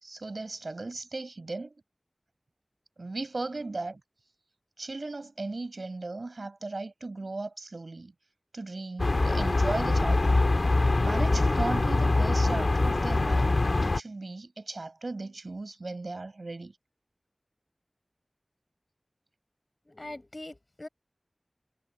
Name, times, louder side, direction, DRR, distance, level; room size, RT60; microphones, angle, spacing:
voice 1, 0.0-1.7 3.0-4.0 4.8-8.1 8.5-10.4 11.0-13.5 13.8-16.8, right 3 dB, 80° right, 4.9 m, -36 dB
sound 1, 9.0-14.0, left 2 dB, 80° left, 1.8 m, -24 dB
voice 2, 19.9-20.9, left 1 dB, 40° left, 6.7 m, -42 dB
wide cardioid pair, 50°, 0 cm